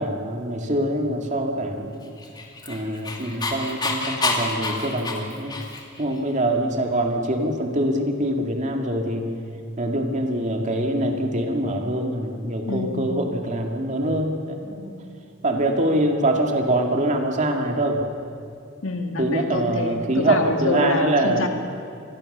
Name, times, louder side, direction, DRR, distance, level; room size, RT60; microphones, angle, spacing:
voice 1, 0.0-2.1 2.7-5.6 6.0-9.3 9.8-14.9 15.4-18.0 19.2-21.5, right 1 dB, 40° right, 3 dB, 2.3 m, -24 dB
Dog, 2.2-6.0, left 3 dB, 20° left, 2.5 m, -28 dB
voice 2, 12.6-13.4 18.8-21.5, left 2 dB, 85° left, 4 dB, 2.2 m, -27 dB
26.5 x 20.5 x 6.8 m, 2.4 s
head